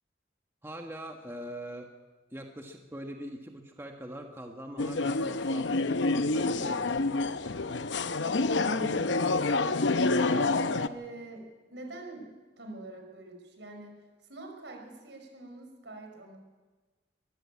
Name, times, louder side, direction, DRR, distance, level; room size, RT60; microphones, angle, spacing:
voice 1, 0.6-1.9 2.3-5.7 6.1-7.1 10.2-10.4, right 1 dB, 15° right, 2 dB, 1.4 m, -42 dB
sound 1, 4.8-10.9, left 3 dB, 80° left, 0.8 m, -28 dB
voice 2, 8.7-9.3 10.0-12.3 12.6-14.0 14.3-16.4, right 2 dB, 75° right, 3 dB, 5.0 m, -43 dB
22.5 x 14.5 x 8.6 m, 1.3 s
head